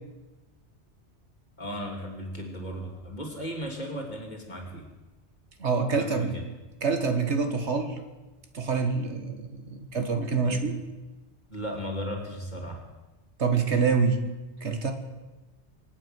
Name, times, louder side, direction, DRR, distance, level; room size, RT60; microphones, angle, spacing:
voice 1, 1.6-4.9 5.9-6.4 10.4-10.6 11.5-12.8, equal, 40° left, 0 dB, 3.1 m, -36 dB
voice 2, 5.6-6.4 6.8-8.0 8.5-10.8 13.4-14.2 14.6-14.9, right 5 dB, 75° right, 6 dB, 1.9 m, -26 dB
26.0 x 8.7 x 6.2 m, 1.1 s
omnidirectional pair, 1.2 m